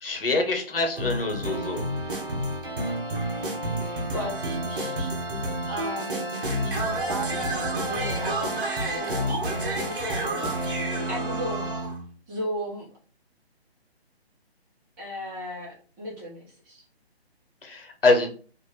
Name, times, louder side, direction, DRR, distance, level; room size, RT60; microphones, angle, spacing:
voice 1, 0.0-1.8 17.6-18.3, left 3 dB, 60° left, 4 dB, 1.2 m, -25 dB
sound 1, 1.0-12.0, right 1 dB, 55° right, 1.3 m, -29 dB
voice 2, 4.1-5.1 5.7-9.4 9.8-10.5 10.9-11.9 12.3-12.9 15.0-16.8, equal, 20° right, -6 dB, 1.5 m, -36 dB
4.2 x 2.9 x 3.2 m, 0.40 s
figure-of-eight pair, 150°, 32 cm